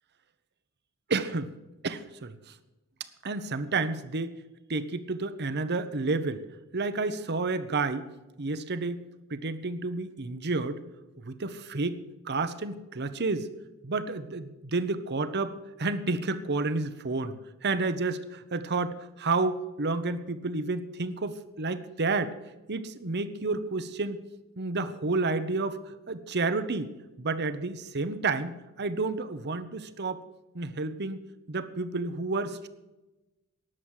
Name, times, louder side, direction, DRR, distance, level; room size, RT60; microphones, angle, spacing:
voice 1, 1.1-1.5 1.8-2.3 3.2-4.4 4.7-6.4 6.7-8.1 8.4-9.0 9.3-10.8 11.2-12.0 12.3-13.5 13.8-17.3 17.6-22.3 22.7-24.2 24.6-26.9 27.2-30.2 30.5-32.7, right 3 dB, 50° right, 12 dB, 1.0 m, -30 dB
18.5 x 7.6 x 6.5 m, 1.1 s
head